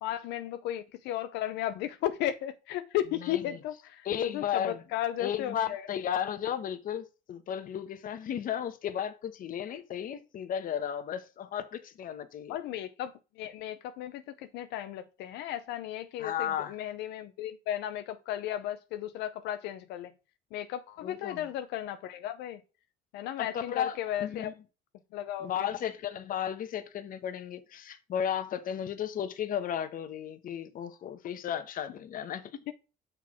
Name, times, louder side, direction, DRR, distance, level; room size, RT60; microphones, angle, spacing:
voice 1, 0.0-5.9 12.5-20.1 20.5-22.6 23.1-24.5 25.1-25.7 32.7-32.8, left 12 dB, 90° left, 0.6 m, -35 dB
voice 2, 3.2-3.6 4.0-4.8 5.2-12.6 16.2-16.7 21.0-21.5 23.4-24.5 25.4-32.6, left 9 dB, 55° left, 1.0 m, -34 dB
6.1 x 4.6 x 5.9 m
cardioid pair, 110°, 17 cm